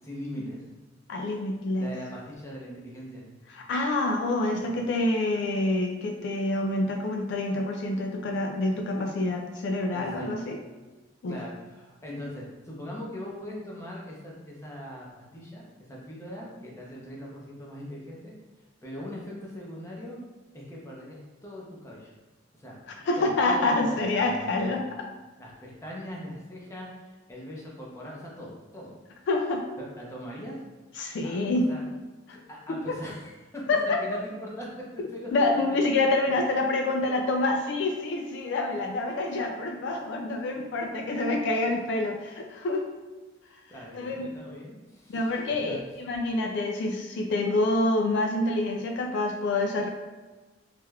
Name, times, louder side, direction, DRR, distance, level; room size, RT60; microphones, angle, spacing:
voice 1, 0.0-0.7 1.2-1.5 1.8-3.3 4.6-4.9 9.9-10.3 11.3-18.4 18.8-20.2 20.5-22.1 22.5-22.8 23.2-24.8 25.4-26.9 27.3-28.9 29.2-29.3 29.8-30.6 31.2-31.4 31.7-31.8 32.5-35.8 43.7-45.3 45.7-45.8, equal, 15° left, -4 dB, 0.7 m, -41 dB
voice 2, 1.1-2.0 3.5-10.6 11.2-11.4 23.0-24.9 29.3-29.7 31.0-31.7 32.3-32.4 32.7-33.0 33.7-34.2 35.0-42.9 43.9-44.3 45.1-45.8 46.1-49.9, left 2 dB, 60° left, 3 dB, 0.3 m, -27 dB
3.2 x 3.1 x 2.3 m, 1.2 s
head